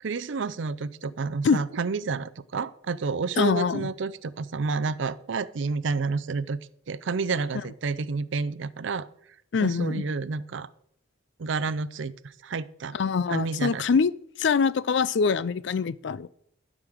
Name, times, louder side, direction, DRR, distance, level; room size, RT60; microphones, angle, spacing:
voice 1, 0.0-6.6 6.9-9.1 9.6-10.7 11.4-13.0 13.3-13.9, right 4 dB, 70° right, 0.5 m, -30 dB
voice 2, 3.4-3.9 9.5-10.0 12.9-14.1 14.4-16.3, left 5 dB, 65° left, 0.4 m, -24 dB
12.0 x 5.0 x 6.3 m
head